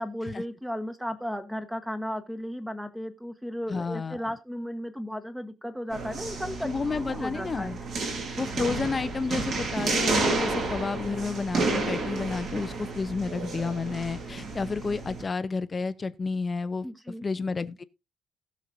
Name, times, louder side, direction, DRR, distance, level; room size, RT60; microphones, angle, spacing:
voice 1, 0.0-7.7 16.8-17.3, equal, 5° right, 1.3 m, -35 dB
voice 2, 3.7-4.2 6.6-7.8 8.4-16.9 17.2-17.8, left 4 dB, 25° left, 0.7 m, -31 dB
sound 1, 5.9-15.2, right 3 dB, 60° right, 4.9 m, -31 dB
19.0 x 6.4 x 2.7 m
cardioid pair, 135°, 0 cm